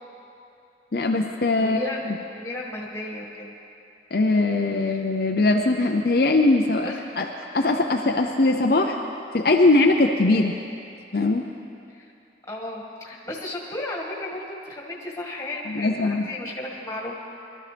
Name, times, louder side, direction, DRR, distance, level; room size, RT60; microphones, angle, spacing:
voice 1, 0.9-1.8 4.1-7.3 7.5-9.0 9.3-10.5 11.1-11.4 15.7-16.3, left 2 dB, 55° left, 2 dB, 0.6 m, -21 dB
voice 2, 1.6-2.1 2.3-3.5 4.7-5.1 6.8-7.0 11.9-12.1 12.5-17.1, left 1 dB, 15° left, -3 dB, 1.8 m, -34 dB
21.5 x 12.5 x 3.4 m, 2.7 s
head